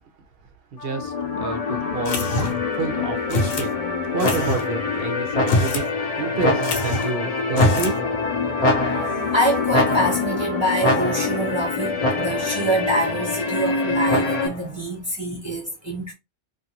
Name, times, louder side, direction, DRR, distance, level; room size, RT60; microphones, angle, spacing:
voice 1, 0.7-3.7 4.1-5.8 6.2-8.0, right 4 dB, 60° right, 0.6 m, -29 dB
sound 1, 0.8-14.5, left 4 dB, 50° left, 0.4 m, -26 dB
sound 2, 2.1-2.7 3.3-3.7 4.2-4.7 5.4-5.9 6.2-6.3 6.6-7.1 7.5-8.0, left 2 dB, 70° left, 1.0 m, -24 dB
sound 3, 4.2-4.8 5.3-5.9 6.4-7.1 7.5-8.2 8.6-9.3 9.7-10.4 10.8-11.5 12.0-12.6 14.1-14.7, left 1 dB, 35° left, 0.8 m, -24 dB
voice 2, 9.3-16.1, right 1 dB, 20° right, 1.0 m, -25 dB
2.5 x 2.4 x 2.8 m
omnidirectional pair, 1.5 m